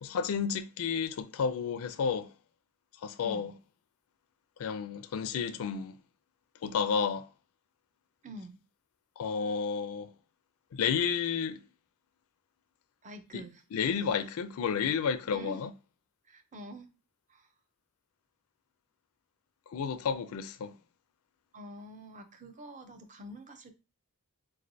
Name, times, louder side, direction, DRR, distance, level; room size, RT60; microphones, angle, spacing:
voice 1, 0.0-2.3 3.0-3.5 4.6-6.0 6.6-7.3 9.2-10.1 10.7-11.6 13.3-13.4 13.7-15.7 19.7-20.7, left 6 dB, 70° left, 0.4 m, -31 dB
voice 2, 3.2-3.5 8.2-8.6 13.0-13.9 15.3-15.6 16.3-16.9 17.3-17.5 21.5-23.7, right 1 dB, 35° right, 0.6 m, -46 dB
4.6 x 3.1 x 2.6 m
head